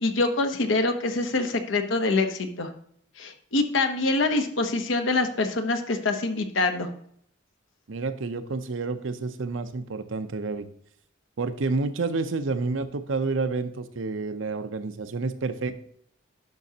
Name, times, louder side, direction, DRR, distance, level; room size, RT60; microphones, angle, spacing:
voice 1, 0.0-2.7 3.2-6.9, left 3 dB, 75° left, 6 dB, 1.0 m, -25 dB
voice 2, 7.9-10.7 11.4-15.8, right 3 dB, 80° right, 10 dB, 0.7 m, -29 dB
10.5 x 6.2 x 2.8 m, 0.66 s
head